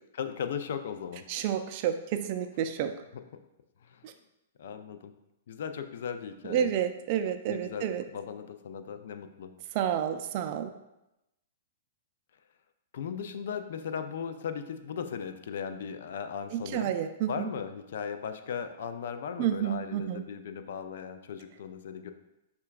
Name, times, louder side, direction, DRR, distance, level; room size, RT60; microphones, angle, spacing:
voice 1, 0.1-1.2 3.8-4.1 4.6-5.1 5.5-6.7 7.5-9.5 12.9-16.9 17.3-22.1, left 7 dB, 65° left, 8 dB, 0.3 m, -37 dB
voice 2, 1.3-2.9 4.0-4.1 6.4-8.0 9.7-10.7 16.5-17.5 19.4-20.2, right 9 dB, 45° right, 7 dB, 0.3 m, -30 dB
5.5 x 2.2 x 2.3 m, 0.91 s
hypercardioid pair, 130°, 0 cm